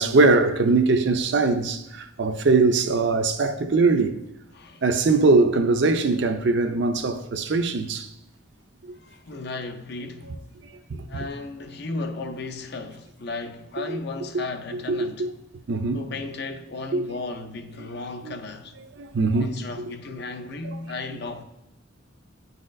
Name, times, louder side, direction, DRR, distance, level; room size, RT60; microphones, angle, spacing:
voice 1, 0.0-4.1 4.8-8.1 10.9-11.3 13.9-14.0 14.9-15.3 15.7-16.0 16.9-17.1 18.3-18.4 19.0-19.5, right 3 dB, 60° right, 0.5 m, -21 dB
voice 2, 4.5-4.8 8.9-10.4 11.1-15.3 15.9-18.8 19.4-21.4, left 3 dB, 55° left, 0.5 m, -35 dB
9.4 x 4.0 x 2.6 m
head